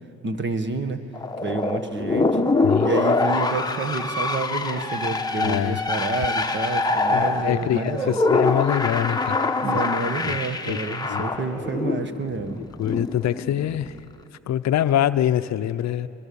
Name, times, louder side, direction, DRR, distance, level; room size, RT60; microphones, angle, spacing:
voice 1, 0.2-1.0 1.4-2.4 2.8-8.2 9.6-12.6, right 3 dB, 40° right, 9 dB, 1.5 m, -29 dB
sound 1, 1.1-13.9, left 3 dB, 15° left, 1.1 m, -25 dB
voice 2, 5.4-5.8 7.1-9.4 10.2-10.4 10.7-10.8 11.1-11.3 12.8-13.9 14.5-16.1, left 11 dB, 65° left, 12 dB, 0.6 m, -24 dB
23.0 x 22.0 x 7.0 m, 2.7 s
cardioid pair, 90°, 30 cm